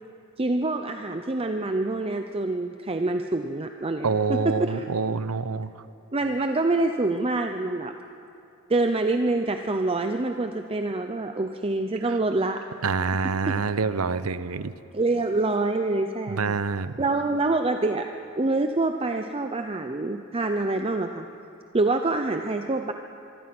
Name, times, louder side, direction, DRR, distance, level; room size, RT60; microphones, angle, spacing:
voice 1, 0.4-4.8 6.1-7.9 8.7-12.6 14.9-16.5 17.0-21.3 21.7-22.9, right 2 dB, 25° right, 6 dB, 0.7 m, -26 dB
voice 2, 4.0-5.7 12.1-12.2 12.8-14.7 16.3-17.0, right 4 dB, 90° right, 14 dB, 0.8 m, -26 dB
24.5 x 23.5 x 6.1 m, 2.6 s
head